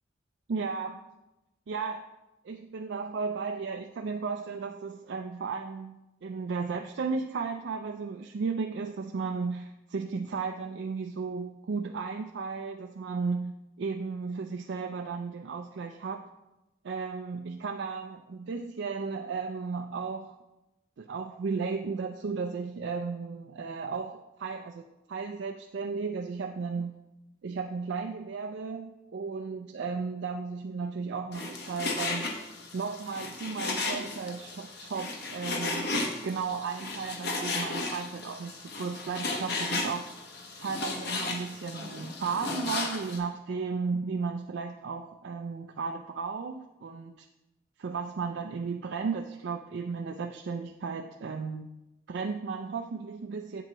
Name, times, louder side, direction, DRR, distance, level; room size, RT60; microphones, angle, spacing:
voice 1, 0.5-1.0 1.7-2.0 2.4-13.5 13.8-16.2 16.8-20.4 21.0-26.9 27.4-32.3 32.7-35.9 36.2-40.0 40.6-47.3 47.8-51.7 52.1-53.6, right 5 dB, 60° right, 4 dB, 0.4 m, -34 dB
Frying (food), 31.3-43.2, left 3 dB, 55° left, 1.1 m, -35 dB
7.8 x 7.4 x 3.0 m, 0.96 s
head